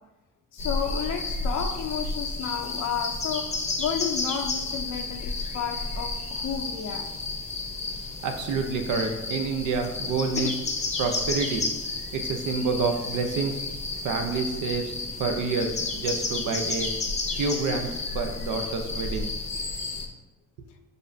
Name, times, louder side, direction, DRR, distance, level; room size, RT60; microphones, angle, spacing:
voice 1, 0.5-3.5 3.8-7.1 10.4-10.5, left 7 dB, 70° left, 4 dB, 0.5 m, -32 dB
sound 1, 0.6-20.0, left 3 dB, 25° left, 0.6 m, -32 dB
voice 2, 8.2-10.6 11.0-11.6 12.1-13.6 14.0-16.9 17.4-19.3 20.6-20.7, right 4 dB, 85° right, 5 dB, 0.6 m, -28 dB
6.7 x 2.5 x 2.5 m, 1.1 s
cardioid pair, 90°, 30 cm